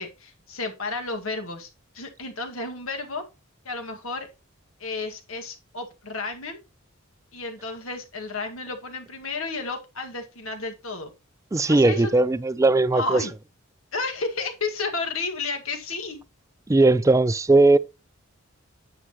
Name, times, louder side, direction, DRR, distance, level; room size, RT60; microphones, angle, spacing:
voice 1, 0.0-1.7 1.9-3.2 3.6-4.3 4.8-6.6 7.3-11.1 11.7-12.1 12.9-13.3 13.9-16.2, left 3 dB, 75° left, 2.0 m, -32 dB
voice 2, 11.5-13.3 16.7-17.8, right 2 dB, 15° right, 0.3 m, -18 dB
9.7 x 7.8 x 3.0 m
head